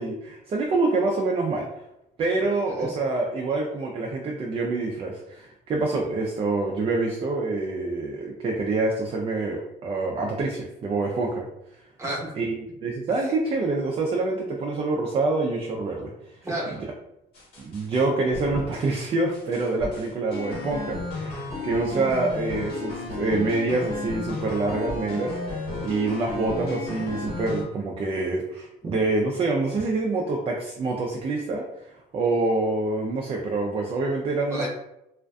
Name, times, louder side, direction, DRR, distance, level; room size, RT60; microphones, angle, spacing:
voice 1, 0.0-1.7 2.2-11.5 12.4-16.1 17.6-25.6 25.8-34.7, right 3 dB, 35° right, 0 dB, 0.4 m, -26 dB
voice 2, 12.0-12.3 13.2-13.3 16.4-16.9 28.8-28.9 34.4-34.7, right 1 dB, 15° right, -4 dB, 0.9 m, -32 dB
sound 1, 17.3-18.0 18.3-19.0 19.3-27.6, left 2 dB, 70° left, 1.3 m, -33 dB
2.4 x 2.3 x 2.2 m, 0.85 s
cardioid pair, 110°, 17 cm